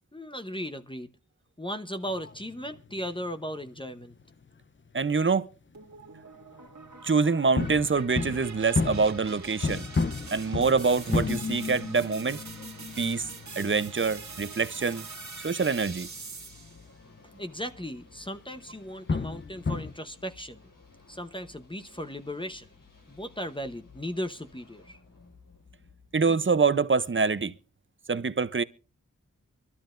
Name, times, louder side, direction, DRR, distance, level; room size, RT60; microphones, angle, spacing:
voice 1, 0.1-1.1 1.6-4.1 17.4-20.7 21.1-22.7 23.1-25.0, equal, 15° left, 0.9 m, -37 dB
sound 1, 2.0-5.3 5.5-6.1 6.4-6.9 7.6-17.2 17.6-17.8 18.2-18.3 18.7-19.9, left 4 dB, 40° left, 0.7 m, -34 dB
voice 2, 4.9-5.5 7.0-9.8 10.3-12.4 13.0-13.2 13.6-15.0 15.4-16.1 26.1-27.5 28.1-28.6, right 4 dB, 40° right, 0.7 m, -25 dB
sound 2, 5.7-16.9, right 4 dB, 60° right, 1.9 m, -44 dB
sound 3, 7.6-26.6, left 4 dB, 80° left, 7.8 m, -56 dB
24.0 x 12.5 x 2.6 m
wide cardioid pair, 50°, 32 cm